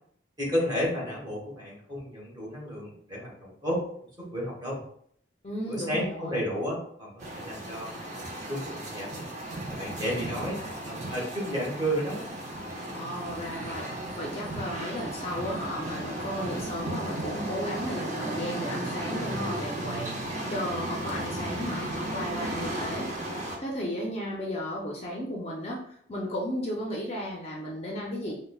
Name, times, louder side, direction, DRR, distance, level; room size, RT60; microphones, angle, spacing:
voice 1, 0.4-3.9 4.2-4.8 5.7-9.3 9.7-10.6 10.9-12.2, equal, 25° right, -4 dB, 1.2 m, -32 dB
voice 2, 5.4-6.4 12.9-13.9 14.2-20.1 20.5-23.1 23.6-28.4, equal, 35° left, -2 dB, 0.5 m, -34 dB
sound 1, 7.2-23.6, right 1 dB, 40° right, 0.6 m, -35 dB
5.2 x 2.1 x 2.3 m, 0.65 s
head